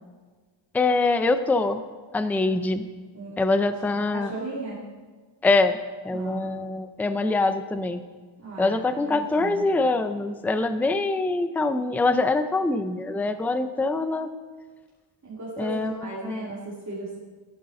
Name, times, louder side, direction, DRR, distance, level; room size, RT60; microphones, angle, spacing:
voice 1, 0.7-1.8 2.1-2.8 3.4-4.3 5.4-5.8 6.0-8.0 8.6-14.3 15.6-16.5, left 3 dB, 5° left, 10 dB, 0.4 m, -24 dB
voice 2, 3.1-3.7 4.1-4.8 6.1-6.5 8.4-9.7 15.2-17.2, right 2 dB, 35° right, -7 dB, 2.3 m, -36 dB
15.0 x 12.5 x 3.8 m, 1.4 s
wide cardioid pair, 160°, 49 cm